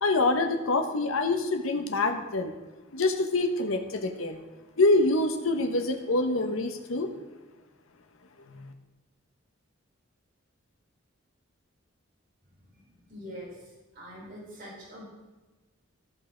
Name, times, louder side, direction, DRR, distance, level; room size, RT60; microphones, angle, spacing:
voice 1, 0.0-2.5 2.9-4.4 4.8-7.1 8.5-8.7, left 2 dB, 85° left, 6 dB, 1.0 m, -26 dB
voice 2, 12.6-15.0, equal, 45° right, -6 dB, 4.2 m, -45 dB
14.5 x 5.6 x 5.0 m, 1.2 s
head